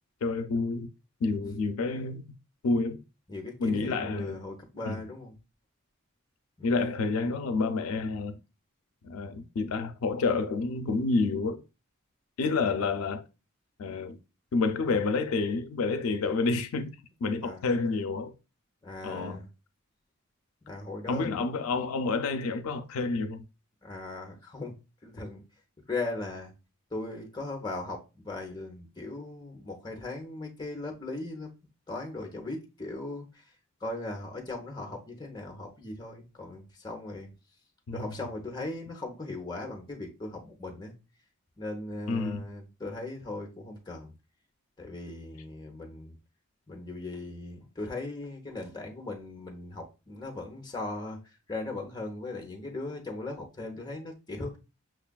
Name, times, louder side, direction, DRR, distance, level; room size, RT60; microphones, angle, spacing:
voice 1, 0.2-0.9 1.2-2.4 2.6-3.0 3.6-4.4 4.9-5.0 6.6-8.4 9.0-11.6 12.4-13.3 13.8-14.2 14.5-18.3 19.0-19.4 21.1-23.4 37.9-38.1 42.1-42.4, left 3 dB, 85° left, 0.4 m, -29 dB
voice 2, 3.3-5.3 6.6-6.7 17.4-17.7 18.8-19.5 20.6-21.4 23.8-24.8 25.0-25.4 25.9-26.5 26.9-31.5 31.9-33.5 33.8-37.3 37.9-40.9 41.6-44.1 44.8-46.1 46.7-51.2 51.5-54.6, left 2 dB, 20° left, 0.7 m, -38 dB
5.9 x 2.3 x 2.2 m
head